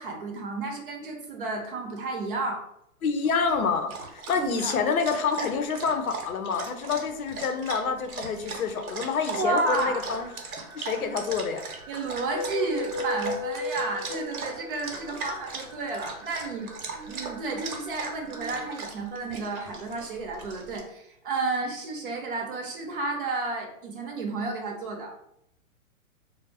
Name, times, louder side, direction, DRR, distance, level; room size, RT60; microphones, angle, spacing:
voice 1, 0.0-2.6 4.3-4.8 9.3-10.0 11.0-11.1 11.9-16.7 17.1-25.1, right 3 dB, 40° right, 2 dB, 0.6 m, -31 dB
voice 2, 3.0-10.3 10.7-11.7, left 5 dB, 80° left, 6 dB, 0.6 m, -27 dB
Dog, 3.4-20.8, right 4 dB, 80° right, 0.8 m, -39 dB
sound 1, 9.4-18.8, left 2 dB, ahead, 0.4 m, -38 dB
2.4 x 2.0 x 3.2 m, 0.77 s
hypercardioid pair, 135°, 42 cm